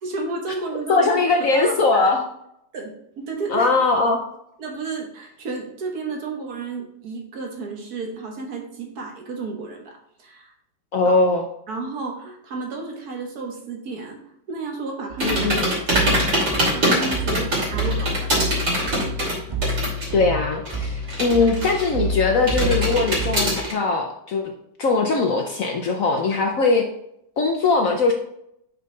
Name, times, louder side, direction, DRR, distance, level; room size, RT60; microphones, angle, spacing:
voice 1, 0.0-1.1 1.5-2.2 2.7-3.7 4.6-10.5 11.0-11.1 11.7-14.2 14.5-15.4 15.9-16.2 16.5-18.3, right 3 dB, 60° right, 1 dB, 1.7 m, -32 dB
voice 2, 0.9-2.2 3.5-4.2 10.9-11.5 15.2-15.7 20.1-24.5 24.8-26.9 27.4-28.1, left 3 dB, 60° left, 3 dB, 0.9 m, -20 dB
sound 1, 15.1-23.6, equal, 20° right, 1.0 m, -28 dB
sound 2, 15.2-20.2 20.5-22.1 22.5-23.7, right 1 dB, 75° right, 3.5 m, -23 dB
6.0 x 5.8 x 3.8 m, 0.76 s
omnidirectional pair, 2.0 m